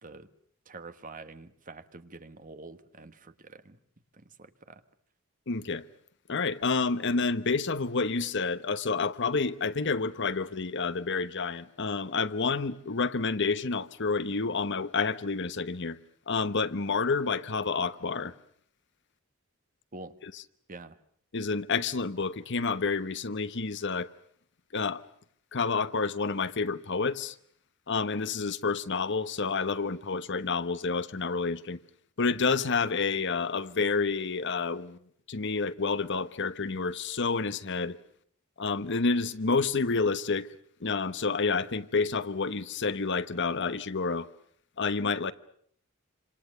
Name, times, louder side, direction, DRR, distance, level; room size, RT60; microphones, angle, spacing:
voice 1, 0.7-3.8 4.1-4.8 19.9-20.2 20.7-21.0, right 3 dB, 40° right, 1.5 m, -46 dB
voice 2, 5.5-5.8 6.3-16.0 16.3-18.3 20.2-20.4 21.3-24.1 24.7-25.0 25.5-27.4 27.9-31.8 32.2-35.0 35.3-38.0 38.6-40.5 40.8-44.3 44.8-45.3, left 4 dB, 60° left, 1.1 m, -29 dB
27.5 x 27.0 x 6.7 m
head